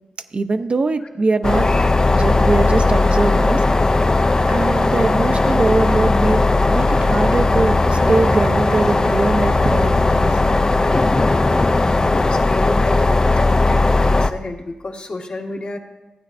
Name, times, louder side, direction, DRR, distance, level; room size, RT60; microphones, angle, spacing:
voice 1, 0.3-1.7 2.1-3.9 4.5-6.4 6.7-10.4, right 3 dB, 50° right, 8 dB, 0.6 m, -22 dB
sound 1, 1.4-14.3, left 2 dB, 30° left, 0.4 m, -17 dB
voice 2, 11.6-15.8, left 2 dB, 50° left, 1 dB, 1.3 m, -31 dB
15.5 x 9.2 x 2.6 m, 1.1 s
cardioid pair, 70°, 3 cm